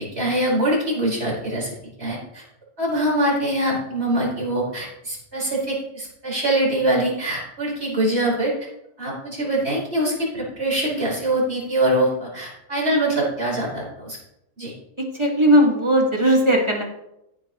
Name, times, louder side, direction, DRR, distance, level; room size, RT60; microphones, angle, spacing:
voice 1, 0.0-1.7 2.0-2.4 2.8-8.5 9.0-14.2 14.6-14.7, right 1 dB, 40° right, -5 dB, 5.3 m, -23 dB
voice 2, 15.0-16.8, equal, 20° right, -1 dB, 1.9 m, -18 dB
15.0 x 9.2 x 3.1 m, 0.84 s
omnidirectional pair, 1.7 m